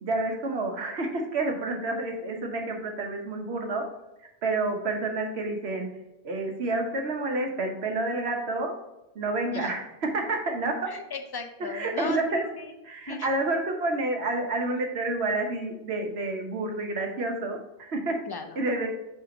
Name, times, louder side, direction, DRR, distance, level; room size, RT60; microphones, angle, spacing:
voice 1, 0.0-3.8 4.4-5.9 6.2-8.7 9.1-10.9 11.7-12.5 12.8-18.2 18.6-18.9, right 2 dB, 65° right, 3 dB, 1.2 m, -29 dB
voice 2, 10.9-12.8 13.0-13.3 18.3-18.6, left 4 dB, 35° left, 6 dB, 0.4 m, -36 dB
5.6 x 3.4 x 5.1 m, 0.91 s
omnidirectional pair, 1.2 m